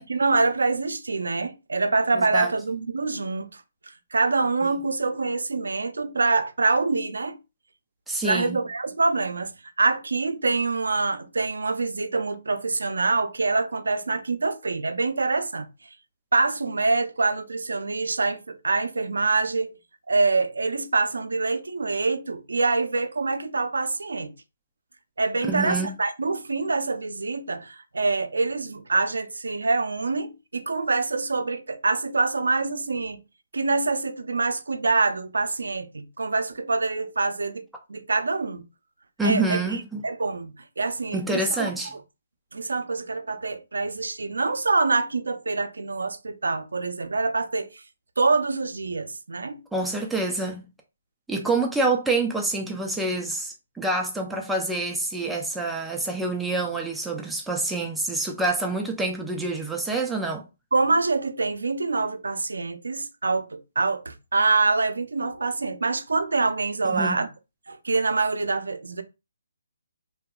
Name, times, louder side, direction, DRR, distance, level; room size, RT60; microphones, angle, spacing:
voice 1, 0.0-7.4 8.2-9.5 9.8-15.7 16.3-19.8 20.1-24.3 25.2-33.2 33.5-38.6 39.2-42.0 42.5-47.8 48.2-49.6 60.7-67.3 67.7-69.0, right 3 dB, 90° right, 0.4 m, -25 dB
voice 2, 2.1-2.5 8.1-8.6 25.5-26.0 39.2-40.0 41.1-41.9 49.7-50.7 51.3-60.4 66.9-67.2, right 2 dB, 5° right, 0.4 m, -27 dB
2.7 x 2.3 x 2.3 m
hypercardioid pair, 155°, 0 cm